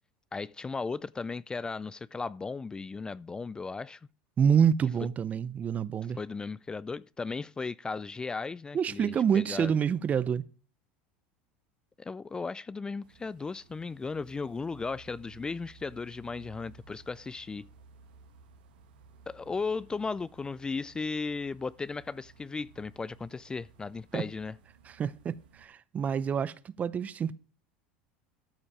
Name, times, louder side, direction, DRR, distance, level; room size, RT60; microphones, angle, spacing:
voice 1, 0.3-4.0 5.0-5.1 6.2-9.7 12.0-17.7 19.3-24.6, left 4 dB, 15° left, 0.3 m, -36 dB
voice 2, 4.4-6.2 8.7-10.4 24.1-24.2 24.9-27.4, right 7 dB, 30° right, 0.6 m, -27 dB
sound 1, 13.0-25.7, right 4 dB, 85° right, 2.0 m, -57 dB
13.5 x 5.1 x 4.9 m
supercardioid pair, 100°, 5 cm